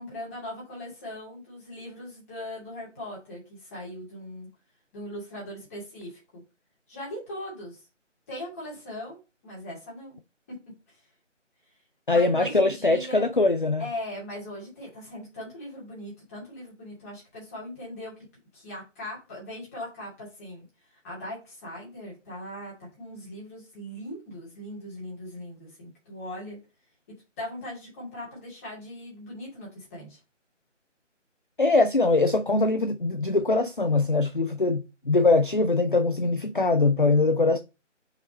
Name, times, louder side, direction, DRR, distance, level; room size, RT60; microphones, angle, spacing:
voice 1, 0.0-4.5 4.9-6.4 6.9-7.8 8.3-9.2 9.4-10.2 10.5-10.6 12.1-13.3 13.8-18.2 18.5-20.7 21.0-26.6 27.4-30.2, left 1 dB, 10° left, 2.5 m, -39 dB
voice 2, 12.1-13.8 31.6-37.6, left 3 dB, 45° left, 0.5 m, -22 dB
5.7 x 5.0 x 4.2 m
figure-of-eight pair, 160°, 37 cm